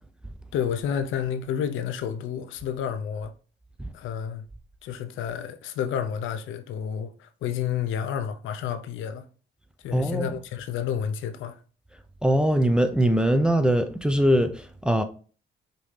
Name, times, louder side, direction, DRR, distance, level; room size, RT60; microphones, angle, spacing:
voice 1, 0.5-3.3 3.9-4.5 4.8-9.2 9.8-11.6, left 8 dB, 80° left, 0.5 m, -30 dB
voice 2, 9.9-10.3 12.2-15.0, right 1 dB, 5° right, 0.4 m, -22 dB
5.1 x 2.7 x 3.2 m
cardioid pair, 90°, 20 cm